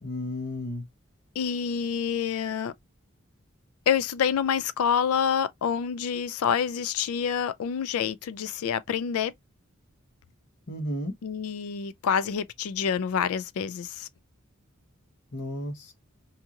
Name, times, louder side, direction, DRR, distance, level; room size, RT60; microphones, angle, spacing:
voice 1, 0.0-0.8 10.7-11.2 15.3-15.9, left 1 dB, 55° left, 0.9 m, -33 dB
voice 2, 1.4-2.7 3.9-9.3 11.2-14.1, left 7 dB, 85° left, 0.4 m, -27 dB
2.8 x 2.6 x 2.4 m
head